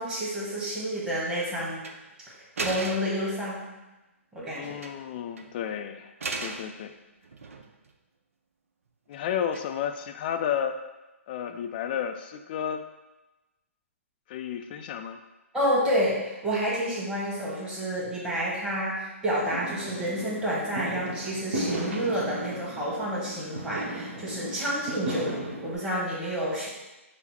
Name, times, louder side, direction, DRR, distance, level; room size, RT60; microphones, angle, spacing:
voice 1, 0.0-1.8 2.6-3.6 4.3-4.7 15.5-25.3 25.6-26.7, equal, 10° right, -7 dB, 1.3 m, -29 dB
sound 1, 1.7-2.0 2.6-3.3 4.6-5.1 5.4-5.5 6.2-6.7 7.2-7.9 9.5-10.0, right 3 dB, 75° right, 0.5 m, -35 dB
voice 2, 4.5-6.1 6.4-6.9 9.1-10.8 11.3-12.8 14.3-15.2, left 9 dB, 40° left, 7 dB, 0.3 m, -32 dB
Fireworks, 19.5-25.7, right 1 dB, 60° right, 1.0 m, -35 dB
5.7 x 2.0 x 4.2 m, 1.1 s
hypercardioid pair, 130°, 8 cm